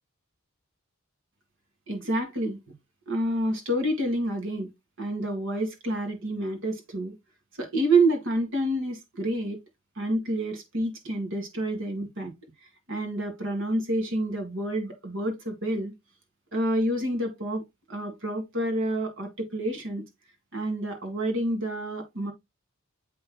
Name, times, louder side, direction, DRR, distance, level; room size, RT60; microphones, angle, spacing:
voice 1, 1.9-2.6 3.1-4.7 5.0-7.1 7.6-9.6 10.0-12.3 12.9-15.9 16.5-17.6 17.9-20.0 20.5-22.3, right 1 dB, 65° right, 1.9 m, -28 dB
7.8 x 5.4 x 2.2 m
head